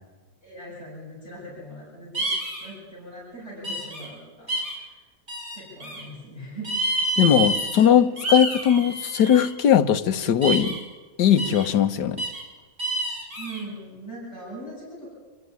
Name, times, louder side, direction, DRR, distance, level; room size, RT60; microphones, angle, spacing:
voice 1, 0.4-2.3 2.6-4.9 5.5-7.1 13.4-15.1, right 1 dB, 35° left, -7 dB, 7.6 m, -40 dB
sound 1, 2.1-2.7 3.6-4.1 4.5-4.8 5.3-6.0 6.6-7.9 8.2-9.5 10.4-10.8 11.4-11.7 12.2-12.4 12.8-13.6, right 2 dB, 35° right, 6.5 m, -28 dB
voice 2, 7.2-10.8 11.2-12.2, left 9 dB, 70° left, 8 dB, 1.6 m, -19 dB
27.0 x 15.0 x 9.6 m, 1.3 s
omnidirectional pair, 1.9 m